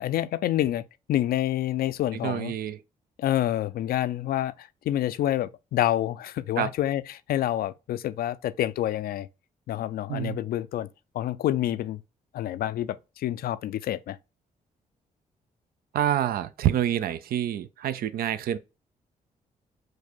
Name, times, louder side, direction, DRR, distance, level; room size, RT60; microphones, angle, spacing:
voice 1, 0.0-2.5 3.2-7.0 7.3-9.3 9.7-10.9 11.1-12.0 12.3-14.2, left 13 dB, 70° left, 0.4 m, -28 dB
voice 2, 2.2-2.8 6.6-6.7 10.1-10.4 15.9-18.6, right 11 dB, 75° right, 0.5 m, -27 dB
4.7 x 2.2 x 4.3 m
supercardioid pair, 55°, 16 cm